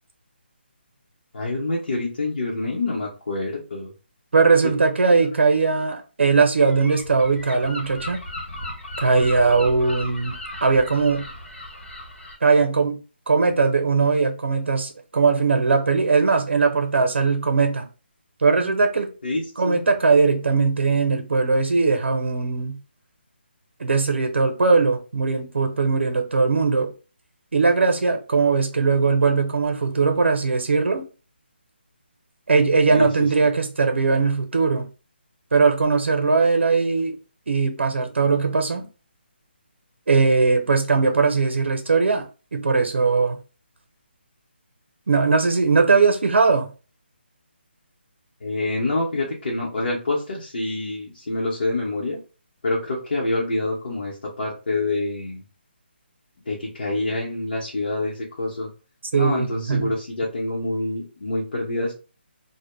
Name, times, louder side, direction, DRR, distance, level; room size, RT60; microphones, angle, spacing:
voice 1, 1.3-3.9 4.6-4.8 19.2-19.8 32.9-33.1 48.4-52.2 52.6-55.4 56.5-58.7 59.1-61.9, left 2 dB, 55° left, 0.7 m, -26 dB
voice 2, 4.3-8.2 9.0-10.4 10.6-11.3 12.4-13.0 13.3-17.9 18.4-19.1 19.6-22.8 23.8-26.9 27.5-31.1 32.5-34.9 35.5-37.1 37.5-38.9 40.1-43.4 45.1-46.7 59.1-59.9, right 4 dB, 85° right, 0.6 m, -20 dB
Gull seagull, 6.6-12.4, left 1 dB, 85° left, 1.0 m, -36 dB
2.1 x 2.0 x 3.1 m
hypercardioid pair, 175°, 6 cm